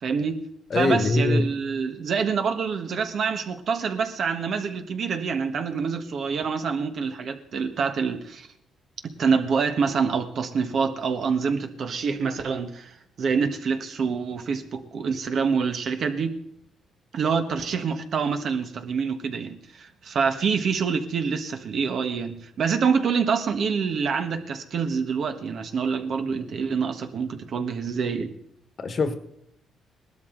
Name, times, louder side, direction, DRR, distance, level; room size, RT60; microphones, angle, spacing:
voice 1, 0.0-0.4 0.7-8.5 9.2-16.3 17.1-28.3, right 5 dB, 60° right, 1.4 m, -26 dB
voice 2, 0.7-1.6 28.8-29.2, left 3 dB, 45° left, 1.4 m, -22 dB
18.5 x 12.5 x 3.9 m
cardioid pair, 90°, 0 cm